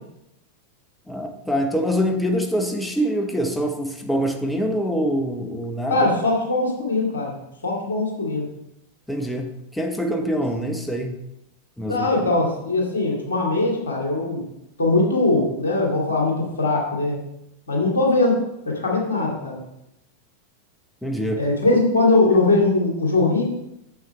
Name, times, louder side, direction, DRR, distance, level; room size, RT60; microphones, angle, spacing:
voice 1, 1.1-6.1 9.1-11.1 11.8-12.1 21.0-21.4, equal, 5° left, 3 dB, 1.0 m, -25 dB
voice 2, 5.9-7.3 7.6-8.5 11.9-14.4 14.8-17.2 17.7-18.4 18.6-19.6 21.4-23.4, left 2 dB, 70° left, -2 dB, 2.6 m, -21 dB
9.1 x 7.4 x 3.3 m, 0.84 s
figure-of-eight pair, 90°, 0 cm